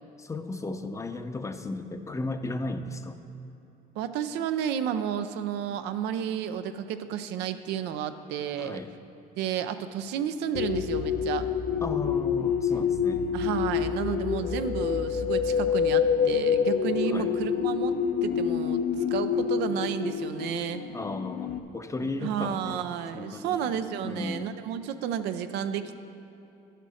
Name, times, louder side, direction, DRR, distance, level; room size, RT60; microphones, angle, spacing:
voice 1, 0.2-3.2 8.6-8.9 11.8-13.3 17.1-17.3 20.9-22.9 23.1-23.7 24.0-24.5, left 2 dB, 20° left, 8 dB, 0.6 m, -35 dB
voice 2, 4.0-8.8 9.4-11.5 13.3-17.9 18.2-18.8 19.1-20.8 22.0-26.0, right 9 dB, 90° right, 10 dB, 0.6 m, -31 dB
sound 1, 10.5-21.6, left 7 dB, 65° left, 0.6 m, -27 dB
11.0 x 6.7 x 6.4 m, 3.0 s
cardioid pair, 110°, 17 cm